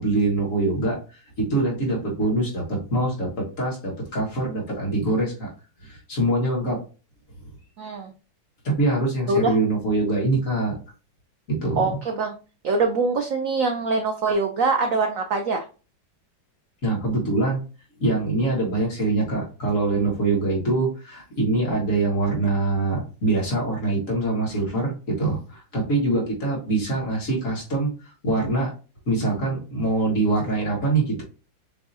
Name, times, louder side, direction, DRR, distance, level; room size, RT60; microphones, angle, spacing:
voice 1, 0.0-5.5 5.8-6.8 8.6-10.7 11.5-12.0 16.8-17.6 18.0-27.9 28.2-28.7 29.1-31.2, right 2 dB, 45° left, -3 dB, 1.9 m, -24 dB
voice 2, 7.8-8.1 9.3-9.5 11.8-12.3 12.6-15.6, right 3 dB, 90° right, 5 dB, 0.7 m, -23 dB
6.7 x 2.8 x 2.7 m, 0.35 s
omnidirectional pair, 2.1 m